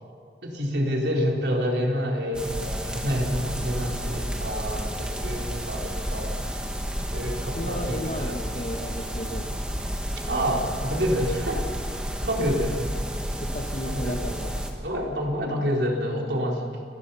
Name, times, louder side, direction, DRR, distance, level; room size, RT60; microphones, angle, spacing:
voice 1, 0.4-6.4 7.1-8.4 10.3-11.6 12.0-12.8 13.8-14.3 14.8-16.7, equal, 85° right, -1 dB, 3.9 m, -28 dB
sound 1, 2.3-14.7, equal, 5° right, 1.7 m, -31 dB
voice 2, 7.5-9.5 13.4-14.7, equal, 45° left, 4 dB, 1.3 m, -34 dB
29.5 x 19.0 x 5.7 m, 2.6 s
head